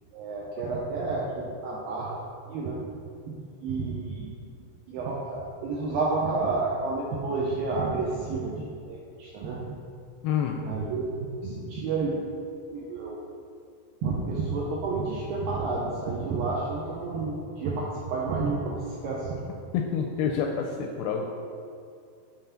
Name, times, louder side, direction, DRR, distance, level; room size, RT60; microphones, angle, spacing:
voice 1, 0.1-2.8 3.3-4.3 4.9-9.8 10.6-12.2 12.7-13.2 14.0-19.4, right 3 dB, 80° right, -4 dB, 2.1 m, -30 dB
voice 2, 10.2-10.6 19.7-21.3, left 7 dB, 85° left, 2 dB, 2.3 m, -27 dB
8.9 x 3.8 x 5.7 m, 2.4 s
omnidirectional pair, 4.9 m